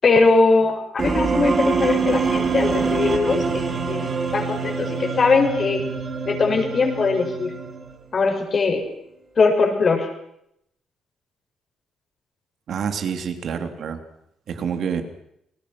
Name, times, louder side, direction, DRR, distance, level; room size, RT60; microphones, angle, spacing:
voice 1, 0.0-5.8 6.2-7.5 8.1-8.8 9.4-10.1, left 4 dB, 45° left, 4 dB, 6.5 m, -20 dB
sound 1, 1.0-8.0, right 5 dB, 40° right, 4.0 m, -25 dB
voice 2, 12.7-14.0 14.5-15.0, right 7 dB, 65° right, 7 dB, 3.3 m, -27 dB
28.5 x 19.5 x 6.1 m, 0.77 s
cardioid pair, 90°, 0 cm